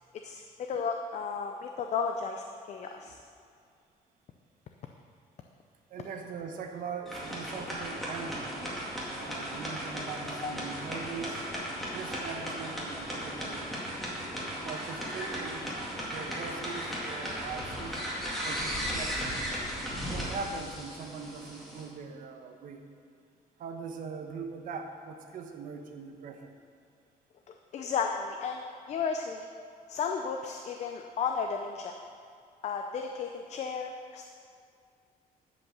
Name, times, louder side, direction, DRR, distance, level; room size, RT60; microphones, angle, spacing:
voice 1, 0.2-3.2 10.4-10.5 27.5-29.5 29.9-31.9 32.6-34.3, left 6 dB, 45° left, 4 dB, 0.6 m, -34 dB
voice 2, 5.9-8.7 9.1-11.5 11.9-13.8 14.6-18.0 18.4-19.4 20.1-22.9 23.6-26.5, right 5 dB, 60° right, 4 dB, 1.1 m, -41 dB
sound 1, 7.1-21.9, equal, ahead, 2.1 m, -36 dB
11.0 x 5.5 x 7.0 m, 2.3 s
cardioid pair, 160°, 16 cm